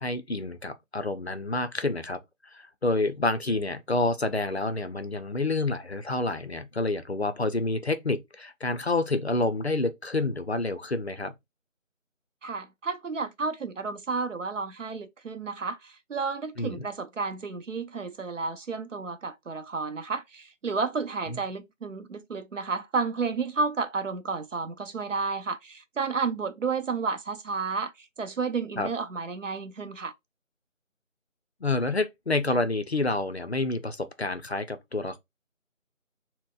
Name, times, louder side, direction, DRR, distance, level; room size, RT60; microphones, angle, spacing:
voice 1, 0.0-2.2 2.5-11.3 16.6-16.8 21.3-21.4 28.8-28.9 31.6-35.2, left 2 dB, 55° left, 0.5 m, -28 dB
voice 2, 12.4-30.1, right 4 dB, 70° right, 0.6 m, -31 dB
3.9 x 2.1 x 2.2 m
figure-of-eight pair, 175°, 40 cm